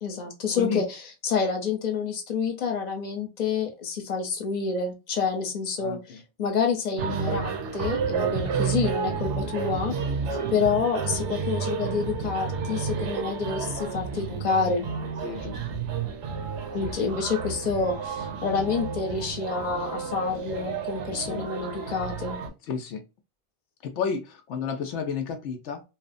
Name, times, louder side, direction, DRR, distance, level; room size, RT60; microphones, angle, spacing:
voice 1, 0.0-9.9 10.5-14.9 16.7-22.4, left 5 dB, 40° left, 2 dB, 0.9 m, -28 dB
voice 2, 0.5-0.9 5.8-6.2 8.2-8.3 10.3-10.5 15.2-15.8 16.8-16.9 21.2-21.5 22.7-23.0 23.8-25.8, left 6 dB, 80° left, 5 dB, 0.9 m, -32 dB
sound 1, 7.0-22.5, right 5 dB, 80° right, 0.9 m, -31 dB
2.9 x 2.0 x 2.5 m, 0.27 s
omnidirectional pair, 1.2 m